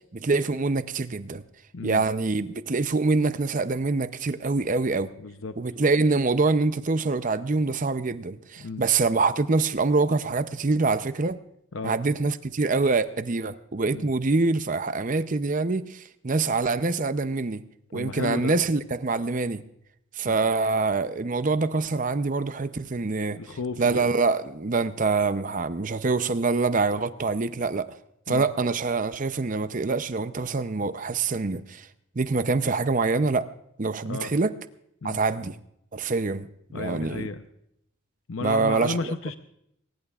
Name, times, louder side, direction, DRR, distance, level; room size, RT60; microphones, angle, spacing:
voice 1, 0.1-1.4 1.8-5.1 5.6-11.4 11.8-17.6 17.9-19.6 20.2-23.4 23.8-27.9 28.3-31.9 32.2-33.5 33.8-34.5 35.0-35.6 35.9-36.5 36.7-37.3 38.4-39.1, right 3 dB, 35° right, 0.6 m, -25 dB
voice 2, 5.2-5.6 8.6-8.9 11.7-12.0 13.9-14.1 17.9-18.5 20.2-20.5 23.4-24.1 28.3-28.5 34.1-34.3 35.0-35.2 36.7-37.4 38.3-39.4, left 3 dB, 70° left, 0.7 m, -33 dB
22.0 x 20.0 x 2.4 m
head